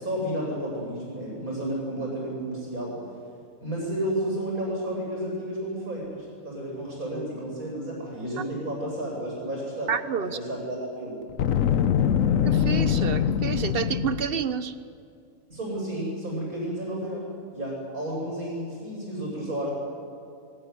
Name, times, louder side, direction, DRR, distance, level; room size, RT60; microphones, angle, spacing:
voice 1, 0.0-3.0 3.6-9.9 10.2-11.2 15.5-19.7, right 1 dB, 70° right, -4 dB, 8.4 m, -32 dB
voice 2, 9.9-10.4 12.4-14.7, right 7 dB, 45° right, 12 dB, 1.1 m, -29 dB
Boom, 11.3-14.4, left 9 dB, 65° left, 1.1 m, -23 dB
23.5 x 20.0 x 9.6 m, 2.5 s
omnidirectional pair, 1.6 m